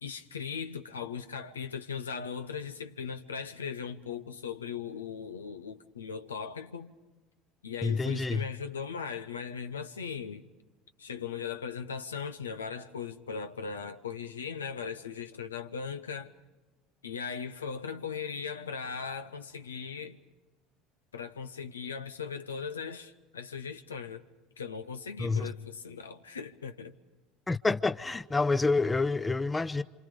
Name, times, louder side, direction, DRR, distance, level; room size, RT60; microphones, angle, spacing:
voice 1, 0.0-6.9 7.6-10.5 11.0-16.3 17.0-20.2 21.1-24.2 24.6-26.9, left 6 dB, 85° left, 0.8 m, -38 dB
voice 2, 7.8-8.4 25.2-25.5 27.5-29.8, left 3 dB, 15° left, 0.7 m, -28 dB
28.5 x 26.5 x 5.2 m
hypercardioid pair, 70°, 0 cm